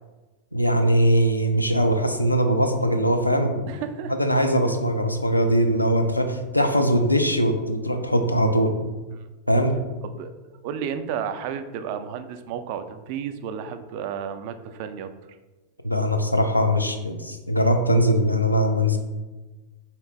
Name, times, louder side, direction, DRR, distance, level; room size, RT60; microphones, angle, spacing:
voice 1, 0.5-3.7 4.1-8.7 9.5-9.7 15.8-19.0, equal, 85° left, 5 dB, 0.4 m, -21 dB
voice 2, 3.7-4.1 10.2-10.3 10.6-15.1, right 8 dB, 45° right, 9 dB, 0.3 m, -32 dB
3.8 x 2.8 x 3.4 m, 1.2 s
figure-of-eight pair, 90°, 0 cm